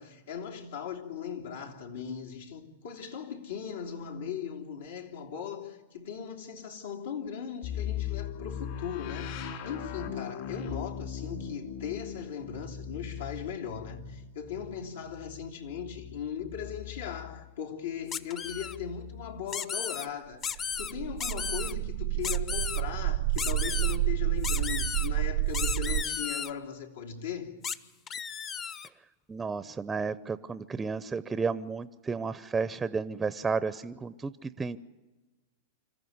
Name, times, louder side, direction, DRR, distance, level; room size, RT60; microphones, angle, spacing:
voice 1, 0.0-27.6, left 8 dB, 85° left, 3.1 m, -38 dB
sound 1, 7.6-17.4 18.5-19.5, left 8 dB, 60° left, 3.8 m, -40 dB
sound 2, 18.1-18.8 19.5-20.1 20.4-20.9 21.2-21.7 22.2-22.8 23.4-24.0 24.4-25.1 25.5-26.5 27.6-27.8 28.1-28.9, left 7 dB, 30° left, 0.8 m, -34 dB
sound 3, 20.6-26.0, right 16 dB, 65° right, 0.7 m, -29 dB
voice 2, 29.3-34.8, right 5 dB, 15° right, 0.6 m, -32 dB
26.0 x 14.5 x 9.6 m
hypercardioid pair, 120°, 0 cm